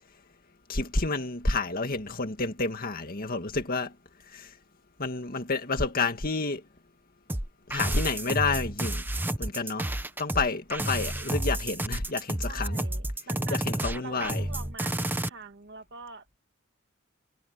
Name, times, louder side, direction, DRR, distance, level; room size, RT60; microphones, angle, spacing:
voice 1, 0.7-4.0 4.3-4.5 5.0-6.6 7.7-9.0 9.4-9.9 10.2-12.9 13.5-14.5, left 3 dB, 45° left, 2.1 m, -29 dB
sound 1, 7.3-15.3, right 1 dB, 10° right, 1.1 m, -30 dB
voice 2, 12.5-13.6 14.0-16.4, right 4 dB, 60° right, 1.9 m, -44 dB
head